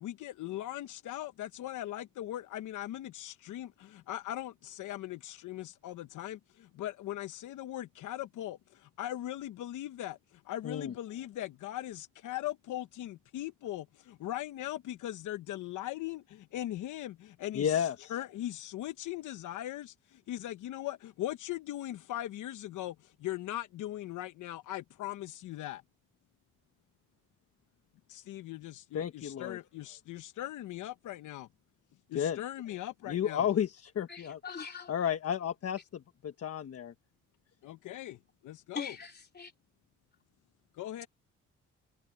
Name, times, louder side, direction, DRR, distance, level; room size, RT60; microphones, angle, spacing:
voice 1, 0.0-3.7 4.1-6.4 6.8-8.6 9.0-10.2 10.5-13.8 14.2-16.2 16.5-17.6 18.1-19.9 20.3-22.9 23.2-25.8 28.1-31.5 32.1-33.4 37.6-38.2 38.4-38.9 40.8-41.1, left 13 dB, 80° left, 1.0 m, -39 dB
voice 2, 10.6-11.0 17.5-18.2 28.9-29.6 32.1-32.4 33.1-34.4 34.9-36.9, left 9 dB, 50° left, 1.4 m, -32 dB
voice 3, 34.1-34.9 38.7-39.5, left 6 dB, 35° left, 3.2 m, -41 dB
cardioid pair, 90°, 30 cm